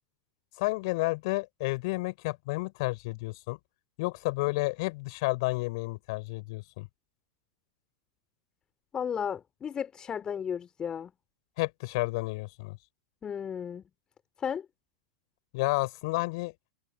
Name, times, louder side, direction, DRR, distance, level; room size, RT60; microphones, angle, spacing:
voice 1, 0.6-3.6 4.0-6.9 11.6-12.8 15.5-16.5, left 24 dB, 55° left, 5.3 m, -31 dB
voice 2, 8.9-11.1 13.2-13.8 14.4-14.7, left 8 dB, 25° left, 4.1 m, -34 dB
figure-of-eight pair, 95°, 3 cm